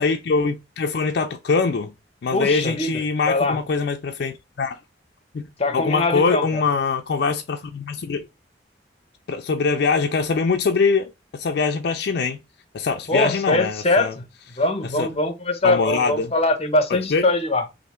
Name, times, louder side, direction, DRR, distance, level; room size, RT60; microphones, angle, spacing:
voice 1, 0.0-1.9 2.2-4.8 5.3-5.5 5.7-8.3 9.3-12.4 12.7-14.1 15.0-15.1 15.6-16.3 16.9-17.2, left 4 dB, 60° left, 0.4 m, -23 dB
voice 2, 2.3-3.6 5.6-6.6 13.1-14.2 14.6-17.6, left 2 dB, 35° left, 0.7 m, -22 dB
3.3 x 2.6 x 4.2 m
head